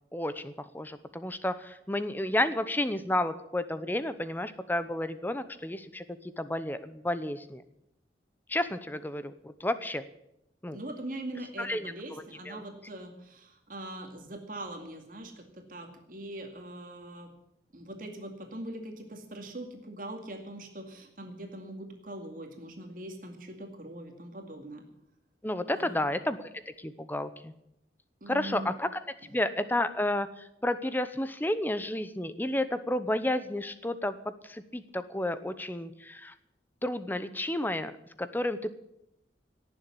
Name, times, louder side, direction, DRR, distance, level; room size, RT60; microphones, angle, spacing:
voice 1, 0.1-6.0 6.4-7.6 8.5-10.0 10.6-10.8 11.6-12.6 25.4-26.5 26.8-27.5 28.3-28.9 29.3-36.3 36.8-37.9 38.2-38.7, left 1 dB, 10° left, 12 dB, 0.8 m, -31 dB
voice 2, 10.7-17.3 17.7-24.8 25.8-26.0 28.2-28.7 29.2-29.3, right 1 dB, 50° right, 3 dB, 2.3 m, -42 dB
17.5 x 7.2 x 9.9 m, 0.82 s
head